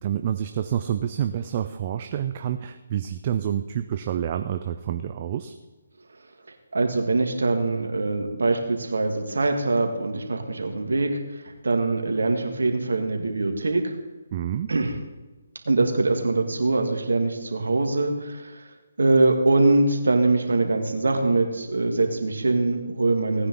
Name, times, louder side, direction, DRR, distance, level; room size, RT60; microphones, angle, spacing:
voice 1, 0.0-5.5 14.3-14.7, right 10 dB, 35° right, 8 dB, 0.6 m, -28 dB
voice 2, 6.7-11.2 11.6-13.9 14.7-14.9 15.7-18.5 19.0-23.5, right 2 dB, 75° right, 4 dB, 2.3 m, -23 dB
18.0 x 9.6 x 4.0 m, 1.2 s
figure-of-eight pair, 150°, 0 cm